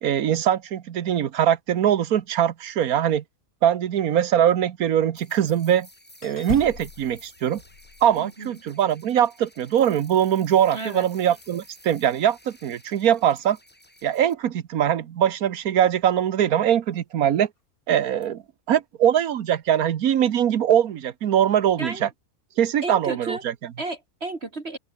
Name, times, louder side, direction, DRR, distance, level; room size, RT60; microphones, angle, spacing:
voice 1, 0.0-3.2 3.6-5.9 6.2-7.6 8.0-13.6 14.0-17.5 17.9-18.4 18.7-22.1 22.6-23.7, right 10 dB, 80° right, 1.5 m, -22 dB
sound 1, 5.1-14.3, equal, 5° left, 3.9 m, -53 dB
sound 2, 5.2-5.7 6.2-8.6 11.4-11.7 12.7-12.9 13.3-13.4 18.2-18.3, left 6 dB, 75° left, 2.4 m, -38 dB
voice 2, 8.2-8.5 10.7-11.1 21.8-22.0 22.8-23.4 23.8-24.8, right 2 dB, 45° right, 2.6 m, -32 dB
open air
omnidirectional pair, 1.5 m